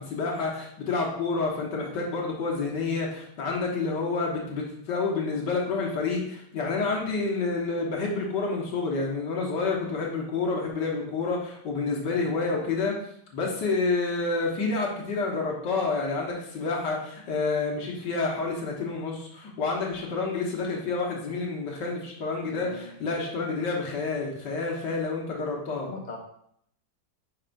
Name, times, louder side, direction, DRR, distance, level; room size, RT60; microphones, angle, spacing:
voice 1, 0.0-12.9 13.3-25.9, left 4 dB, 85° left, -2 dB, 2.0 m, -29 dB
voice 2, 11.9-12.4 22.4-22.9 25.9-26.2, left 2 dB, 30° left, 1 dB, 0.9 m, -40 dB
9.9 x 5.7 x 2.6 m, 0.70 s
omnidirectional pair, 1.8 m